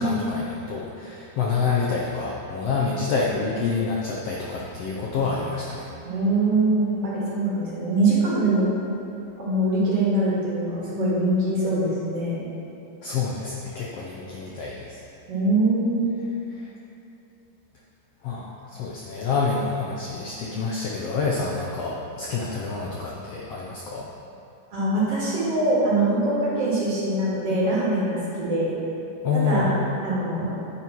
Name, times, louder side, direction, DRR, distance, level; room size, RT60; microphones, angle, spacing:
voice 1, 0.0-5.9 13.0-15.0 16.5-16.7 18.2-24.1 29.2-29.7, left 4 dB, 90° left, -4 dB, 1.3 m, -27 dB
voice 2, 6.0-8.7 9.4-12.4 15.3-16.1 24.7-28.7 29.3-29.8 30.0-30.5, right 2 dB, 50° right, -7 dB, 2.5 m, -23 dB
10.0 x 9.3 x 3.1 m, 2.8 s
omnidirectional pair, 3.8 m